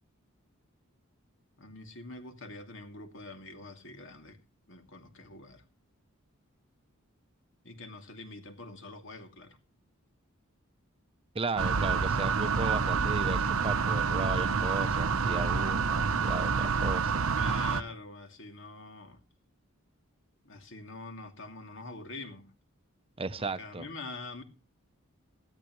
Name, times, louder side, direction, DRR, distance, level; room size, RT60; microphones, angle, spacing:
voice 1, 1.6-4.4 4.7-5.6 7.6-9.6 17.3-19.2 20.4-22.5 23.4-24.4, left 2 dB, 65° left, 2.6 m, -45 dB
voice 2, 11.3-17.2 23.2-23.8, right 3 dB, 25° right, 0.8 m, -35 dB
Water pump drone, 11.6-17.8, right 5 dB, 85° right, 1.0 m, -28 dB
19.5 x 13.5 x 3.1 m
head